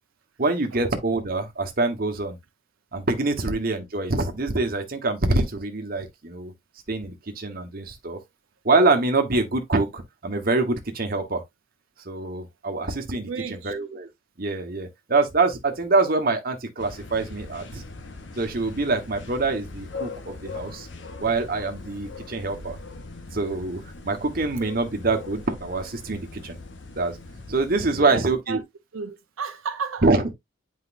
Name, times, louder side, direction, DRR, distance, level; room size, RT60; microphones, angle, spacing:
voice 1, 0.4-2.4 2.9-6.5 6.9-8.2 8.6-11.4 12.0-14.1 14.4-17.8 18.4-20.9 21.2-22.8 23.3-26.6 26.9-27.2 27.5-28.6 30.0-30.3, right 3 dB, 45° right, 1.2 m, -25 dB
voice 2, 13.3-13.7 27.9-28.2 28.5-28.6 28.9-30.1, right 5 dB, 85° right, 0.8 m, -32 dB
sound 1, 16.8-27.9, left 3 dB, 60° left, 1.1 m, -40 dB
8.2 x 4.7 x 2.6 m
head